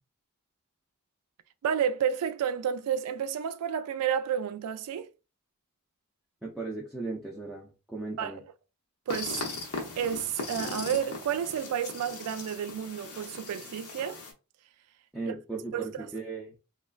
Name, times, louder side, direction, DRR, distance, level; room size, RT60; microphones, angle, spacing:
voice 1, 1.6-5.1 8.2-8.4 9.1-14.2 15.2-15.3 15.7-16.1, right 8 dB, 85° right, 0.3 m, -31 dB
voice 2, 6.4-8.4 15.1-16.6, right 3 dB, ahead, 0.4 m, -37 dB
sound 1, 9.1-14.3, left 3 dB, 75° left, 0.8 m, -39 dB
3.0 x 2.3 x 2.3 m
head